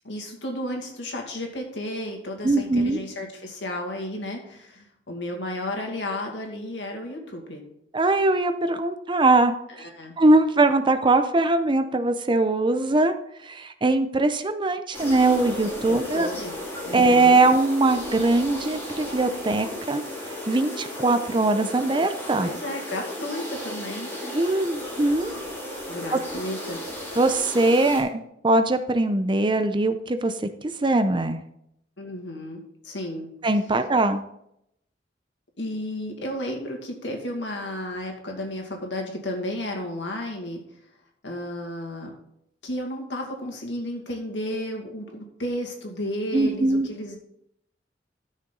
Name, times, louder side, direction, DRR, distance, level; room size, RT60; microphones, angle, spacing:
voice 1, 0.0-7.6 9.7-10.1 15.9-16.6 16.8-17.4 22.4-24.1 25.9-26.8 32.0-33.3 35.6-40.6 41.2-42.1 42.6-47.2, left 1 dB, 80° left, 2 dB, 2.3 m, -33 dB
voice 2, 2.4-3.0 7.9-9.5 10.2-13.1 13.4-16.3 16.9-20.0 20.5-22.5 24.3-25.3 26.1-26.2 27.2-30.3 30.6-31.4 33.4-34.2 46.3-46.9, right 2 dB, 25° right, 9 dB, 0.6 m, -21 dB
sound 1, 14.9-28.0, left 1 dB, 15° left, 4.0 m, -35 dB
13.0 x 6.5 x 3.9 m, 0.76 s
head